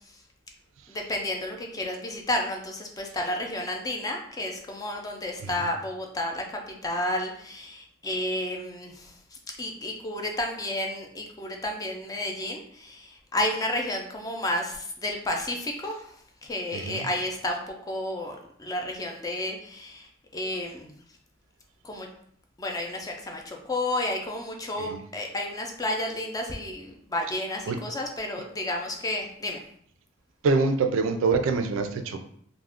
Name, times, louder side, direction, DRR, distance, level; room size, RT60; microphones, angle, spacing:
voice 1, 0.9-9.1 9.6-20.9 21.8-22.1 22.6-29.6, left 1 dB, 20° left, 2 dB, 0.4 m, -31 dB
voice 2, 16.7-17.1 24.8-25.0 27.7-27.8 30.4-32.2, right 4 dB, 75° right, 7 dB, 0.3 m, -25 dB
2.3 x 2.1 x 3.4 m, 0.63 s
head